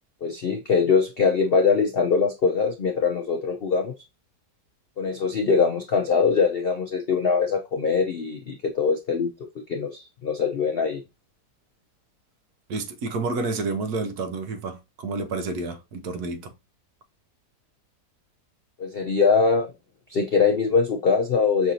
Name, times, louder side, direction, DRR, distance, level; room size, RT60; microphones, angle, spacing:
voice 1, 0.2-3.9 5.0-9.3 9.7-11.0 18.8-19.7 20.1-21.7, left 5 dB, 65° left, 0.6 m, -22 dB
voice 2, 12.7-16.5, right 3 dB, 70° right, 1.2 m, -29 dB
5.8 x 2.6 x 2.8 m
omnidirectional pair, 1.8 m